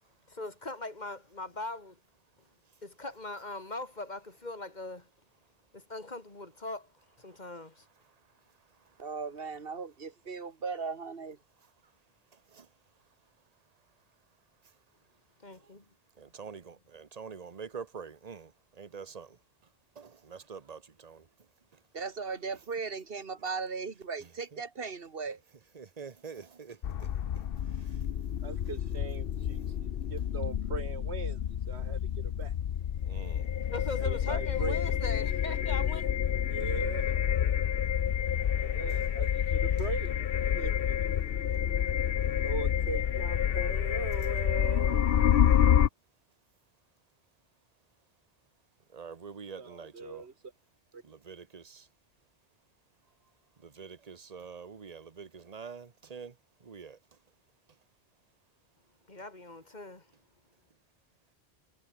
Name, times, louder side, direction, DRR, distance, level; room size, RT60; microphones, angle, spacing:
voice 1, 0.3-2.0 2.8-5.1 5.7-6.9 7.2-7.8 15.4-15.9 33.7-36.1 59.1-60.1, left 2 dB, 40° left, 3.3 m, -40 dB
voice 2, 9.0-11.4 21.9-25.4, right 5 dB, 60° right, 1.8 m, -37 dB
voice 3, 12.3-12.7 15.6-15.7 16.2-19.4 19.9-21.3 24.2-24.6 25.7-27.1 27.3-27.4 27.7-28.0 28.7-28.8 33.1-33.5 48.9-50.3 51.0-51.9 53.6-57.0, right 6 dB, 40° right, 1.2 m, -46 dB
sound 1, 26.8-45.9, left 9 dB, 60° left, 0.9 m, -28 dB
voice 4, 28.4-31.4 31.7-32.5 34.0-34.8 36.5-37.0 38.6-40.1 40.5-41.1 42.4-45.2 49.6-50.3 50.9-51.0, right 4 dB, 75° right, 2.2 m, -40 dB
omnidirectional pair, 1.1 m